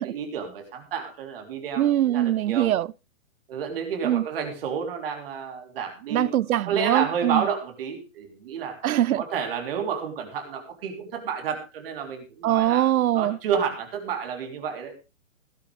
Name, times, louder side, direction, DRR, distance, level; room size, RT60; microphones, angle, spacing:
voice 1, 0.0-2.7 3.5-6.3 6.6-8.8 9.1-12.8 13.1-14.9, right 7 dB, 40° right, 3.5 m, -30 dB
voice 2, 1.8-2.9 4.0-4.3 6.1-7.5 8.8-9.2 12.4-13.4, right 12 dB, 80° right, 0.6 m, -22 dB
17.5 x 12.0 x 3.3 m
hypercardioid pair, 155°, 42 cm